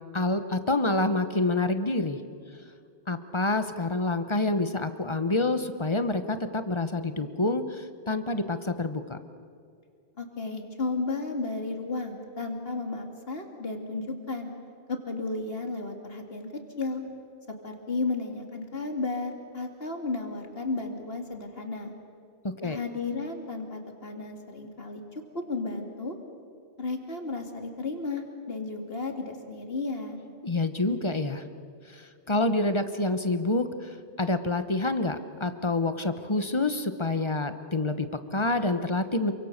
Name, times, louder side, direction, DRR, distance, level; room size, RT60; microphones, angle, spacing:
voice 1, 0.1-2.2 3.1-9.2 22.4-22.8 30.4-31.4 31.9-39.3, left 2 dB, 25° left, 10 dB, 1.0 m, -27 dB
voice 2, 10.2-14.5 14.9-17.0 17.5-21.9 22.6-26.2 26.8-30.2, left 3 dB, 60° left, 4 dB, 2.6 m, -33 dB
28.0 x 24.5 x 6.7 m, 2.3 s
omnidirectional pair, 1.1 m